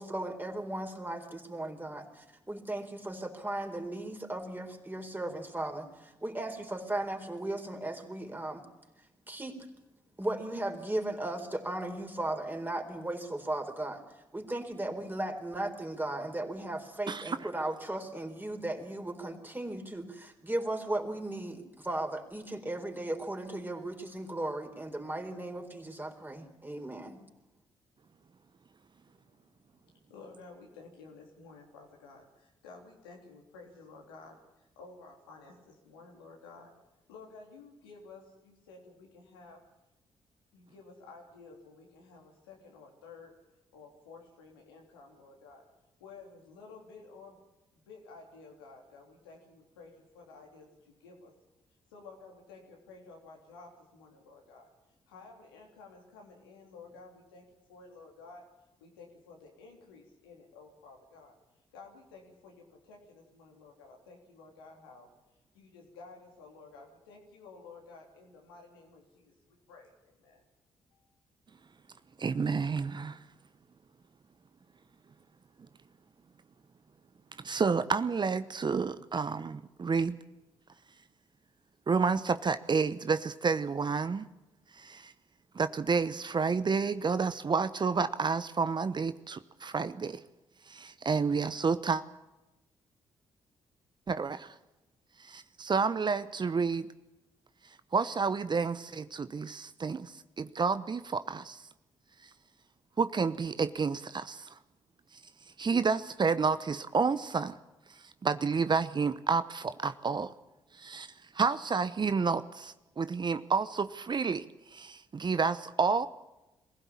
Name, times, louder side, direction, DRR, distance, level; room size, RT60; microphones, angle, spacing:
voice 1, 0.0-8.7 9.3-9.7 10.2-14.0 14.3-27.2, right 1 dB, 15° right, 4 dB, 4.2 m, -36 dB
voice 2, 29.1-36.7 37.1-39.6 40.5-43.3 43.7-45.6 46.0-47.4 47.7-51.3 51.9-54.7 55.1-58.4 58.8-61.3 61.7-65.1 65.5-70.4 70.9-71.1, left 4 dB, 90° left, 0 dB, 3.3 m, -53 dB
voice 3, 72.2-73.2 77.4-80.2 81.9-84.3 84.7-85.1 85.5-90.2 90.7-92.0 94.1-94.5 95.2-96.9 97.9-101.6 103.0-104.5 105.6-107.6 108.2-110.3 110.8-114.5 114.7-116.1, right 5 dB, 40° right, 13 dB, 0.9 m, -30 dB
22.5 x 16.0 x 8.6 m, 1.0 s
hypercardioid pair, 40°, 12 cm